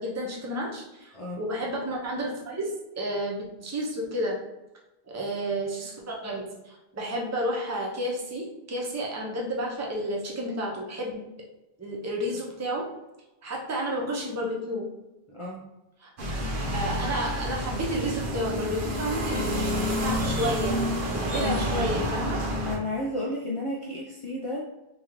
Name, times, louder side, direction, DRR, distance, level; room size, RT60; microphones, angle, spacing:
voice 1, 0.0-4.4 5.1-11.2 11.8-12.9 13.4-14.9 16.0-16.1 16.7-19.4 19.9-20.8 21.1-22.4, equal, 20° right, -2 dB, 0.6 m, -31 dB
voice 2, 15.3-15.7 21.4-21.6 22.7-24.7, left 1 dB, 40° left, -4 dB, 0.5 m, -32 dB
sound 1, 16.2-22.8, equal, 55° right, 0.9 m, -29 dB
3.7 x 2.9 x 3.0 m, 1.0 s
omnidirectional pair, 1.1 m